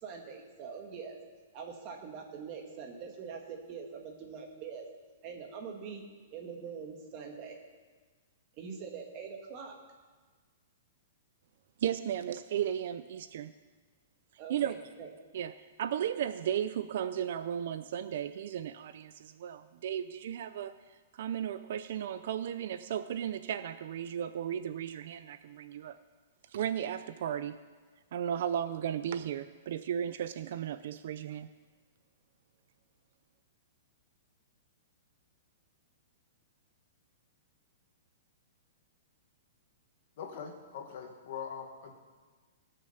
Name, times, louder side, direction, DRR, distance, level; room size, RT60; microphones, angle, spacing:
voice 1, 0.0-1.2 1.5-4.9 5.2-7.6 8.6-9.8 14.4-15.1, right 6 dB, 25° right, 3 dB, 1.5 m, -43 dB
voice 2, 11.8-13.5 14.5-14.8 15.3-15.5 15.8-20.7 21.2-26.0 26.5-27.6 28.1-31.5, right 9 dB, 45° right, 13 dB, 0.4 m, -35 dB
voice 3, 40.2-41.9, left 7 dB, 40° left, 3 dB, 1.7 m, -42 dB
19.0 x 6.5 x 7.0 m, 1.4 s
hypercardioid pair, 180°, 0 cm